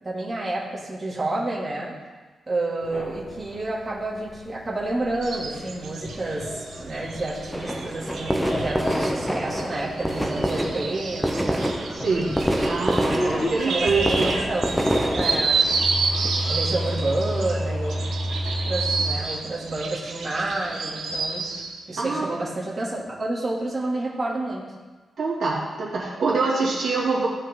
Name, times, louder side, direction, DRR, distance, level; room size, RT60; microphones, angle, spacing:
voice 1, 0.0-1.9 2.5-11.6 13.0-14.7 15.1-15.7 16.4-18.0 18.6-21.4 21.9-24.6, right 2 dB, 25° right, -7 dB, 2.6 m, -29 dB
sound 1, 2.8-19.2, equal, 25° left, 1.5 m, -33 dB
sound 2, 5.2-21.8, right 4 dB, 85° right, 1.3 m, -30 dB
sound 3, 7.5-17.2, equal, ahead, 0.8 m, -27 dB
voice 2, 11.9-12.3 12.7-14.3 22.0-22.3 25.2-27.3, right 4 dB, 60° right, -5 dB, 2.3 m, -25 dB
16.0 x 5.4 x 3.8 m, 1.3 s
wide cardioid pair, 125°, 0 cm